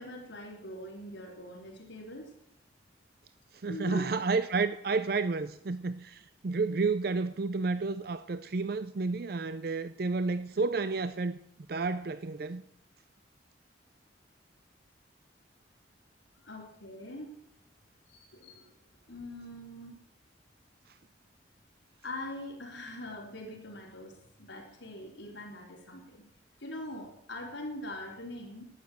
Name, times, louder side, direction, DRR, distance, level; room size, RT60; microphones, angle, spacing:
voice 1, 0.0-2.3 3.7-4.0 16.4-17.4 18.1-18.8 19.1-20.0 22.0-26.2 26.6-28.6, left 1 dB, 75° left, 3.6 m, -42 dB
voice 2, 3.6-11.4 11.7-12.6, right 4 dB, 55° right, 0.5 m, -31 dB
12.0 x 9.2 x 7.8 m
head